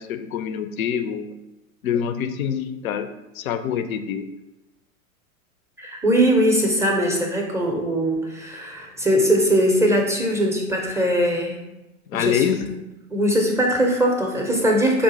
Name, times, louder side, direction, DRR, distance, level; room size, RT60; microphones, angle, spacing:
voice 1, 0.0-1.3 1.8-3.1 3.3-4.3 12.1-12.7, left 8 dB, 75° left, 10 dB, 0.5 m, -25 dB
voice 2, 5.8-11.6 12.1-12.7 13.1-15.0, equal, 5° right, 0 dB, 0.4 m, -21 dB
4.8 x 2.4 x 3.8 m, 1.0 s
hypercardioid pair, 95°, 42 cm